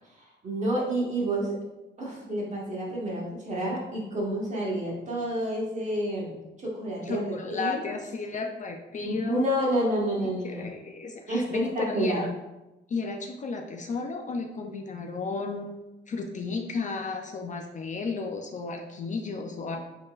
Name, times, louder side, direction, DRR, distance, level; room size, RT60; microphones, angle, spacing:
voice 1, 0.4-1.6 2.0-7.8 9.0-10.7 11.3-12.2, right 1 dB, 35° right, -4 dB, 1.4 m, -29 dB
voice 2, 7.0-9.5 10.4-12.3 12.9-15.8 16.1-19.8, left 4 dB, 40° left, 3 dB, 0.4 m, -33 dB
3.8 x 3.6 x 2.4 m, 1.0 s
cardioid pair, 90°, 20 cm